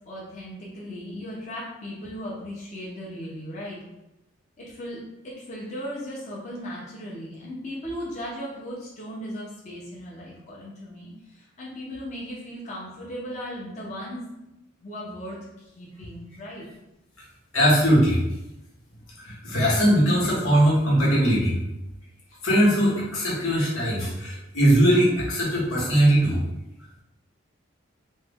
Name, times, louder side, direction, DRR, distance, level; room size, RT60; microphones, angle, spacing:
voice 1, 0.1-3.8 4.6-14.3 14.8-16.7, equal, 35° left, -5 dB, 0.6 m, -37 dB
voice 2, 17.5-18.2 19.2-21.6 22.4-26.4, equal, 90° left, -5 dB, 1.2 m, -20 dB
3.1 x 2.2 x 3.5 m, 0.91 s
head